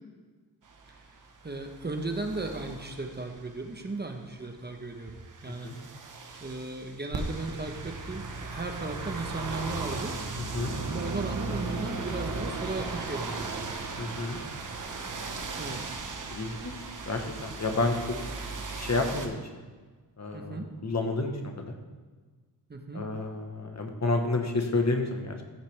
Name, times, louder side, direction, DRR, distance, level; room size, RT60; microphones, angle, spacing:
sound 1, 0.7-3.6 4.8-19.3, right 3 dB, 50° right, 1.1 m, -37 dB
voice 1, 1.4-5.7 6.4-10.1 10.8-13.7 15.6-15.8 17.7-17.9 20.3-20.7 22.7-23.1, right 2 dB, 25° right, 4 dB, 1.0 m, -36 dB
voice 2, 5.5-5.8 10.5-10.7 14.0-14.4 16.3-16.7 17.1-18.2 18.8-19.4 20.2-21.8 22.9-25.4, left 3 dB, 40° left, 3 dB, 1.2 m, -30 dB
14.0 x 6.6 x 3.4 m, 1.4 s
cardioid pair, 80°, 40 cm